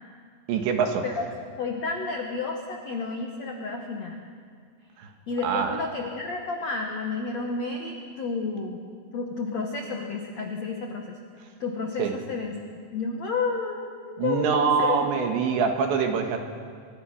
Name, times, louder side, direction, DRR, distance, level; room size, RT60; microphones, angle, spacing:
voice 1, 0.5-1.1 5.0-5.1 5.4-5.8 12.0-12.1 14.2-16.4, right 6 dB, 70° right, 4 dB, 3.7 m, -24 dB
voice 2, 1.6-4.2 5.3-8.8 9.1-12.6 12.9-15.0, left 4 dB, 80° left, 2 dB, 1.5 m, -31 dB
25.5 x 23.5 x 5.9 m, 2.1 s
omnidirectional pair, 5.6 m